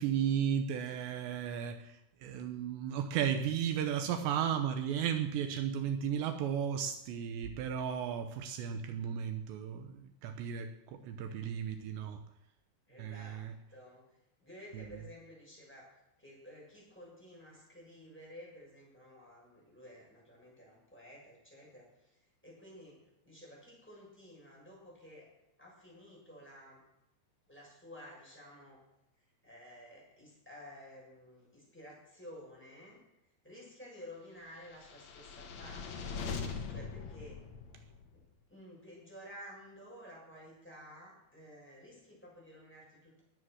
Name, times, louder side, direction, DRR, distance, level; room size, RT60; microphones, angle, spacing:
voice 1, 0.0-12.2 13.0-13.5 14.7-15.0, right 8 dB, 75° right, 8 dB, 3.0 m, -34 dB
voice 2, 12.9-14.0 14.4-15.9 16.2-25.3 25.6-26.8 27.5-28.8 29.2-33.0 33.4-36.2 36.7-37.4 38.1-43.2, equal, ahead, -5 dB, 7.0 m, -53 dB
sound 1, 34.7-38.2, left 5 dB, 60° left, 1.8 m, -41 dB
20.5 x 9.0 x 6.4 m, 0.89 s
omnidirectional pair, 5.3 m